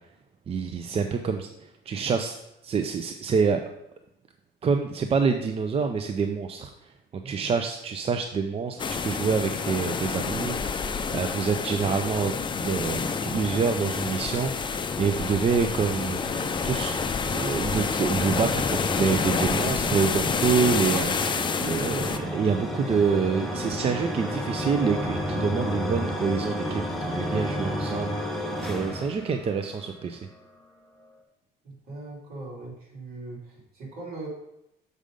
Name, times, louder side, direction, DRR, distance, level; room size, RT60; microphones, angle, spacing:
voice 1, 0.5-2.4 2.6-3.6 4.6-16.2 16.6-17.0 17.3-21.1 21.6-30.3, right 5 dB, 35° right, 6 dB, 0.5 m, -27 dB
sound 1, 8.8-22.2, left 5 dB, 30° left, 0.5 m, -28 dB
sound 2, 14.6-30.1, equal, ahead, 1.0 m, -33 dB
voice 2, 31.6-34.3, right 2 dB, 65° right, -3 dB, 3.1 m, -40 dB
6.6 x 5.1 x 5.0 m, 0.85 s
cardioid pair, 110°, 17 cm